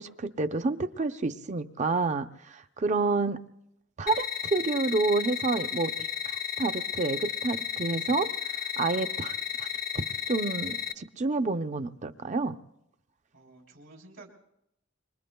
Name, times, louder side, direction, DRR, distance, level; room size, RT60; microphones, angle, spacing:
voice 1, 0.0-3.4 4.0-5.9 6.3-8.3 8.8-9.7 9.9-12.6, right 3 dB, 40° right, 9 dB, 0.6 m, -29 dB
sound 1, 4.1-10.9, left 9 dB, 50° left, 0.5 m, -33 dB
voice 2, 13.3-14.3, right 2 dB, 85° right, 0 dB, 3.6 m, -51 dB
25.5 x 23.5 x 2.3 m, 0.81 s
head